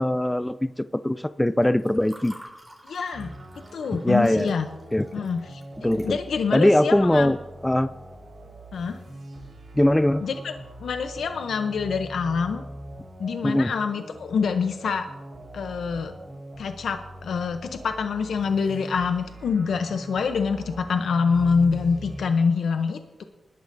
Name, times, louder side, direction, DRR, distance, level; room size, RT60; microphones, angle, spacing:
voice 1, 0.0-2.3 3.9-4.5 4.9-5.3 5.8-6.2 6.5-7.4 7.6-7.9 9.7-10.2 13.4-13.7, left 1 dB, 10° left, 14 dB, 0.3 m, -21 dB
Water / Fill (with liquid), 1.5-6.6, equal, 10° right, 3.7 m, -49 dB
voice 2, 2.9-3.3 3.7-4.7 5.1-7.3 8.7-9.0 10.2-10.5 10.8-12.6 13.2-15.1 15.5-16.1 16.6-23.2, left 5 dB, 85° left, 7 dB, 0.7 m, -26 dB
sound 1, 3.1-22.2, right 1 dB, 70° right, 4.5 m, -42 dB
20.5 x 12.0 x 2.6 m, 1.1 s
cardioid pair, 70°, 0 cm